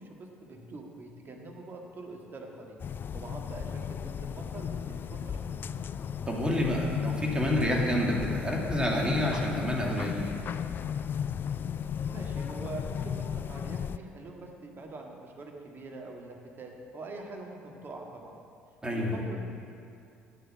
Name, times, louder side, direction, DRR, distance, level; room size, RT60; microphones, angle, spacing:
voice 1, 0.0-2.8 3.1-5.6 12.1-18.3 18.9-19.4, right 2 dB, 40° right, 1 dB, 1.7 m, -44 dB
sound 1, 2.8-14.0, left 8 dB, 40° left, 0.3 m, -35 dB
voice 2, 6.3-10.2 18.8-19.1, left 1 dB, 15° right, -2 dB, 2.3 m, -28 dB
9.4 x 6.8 x 7.1 m, 2.5 s
hypercardioid pair, 55°, 6 cm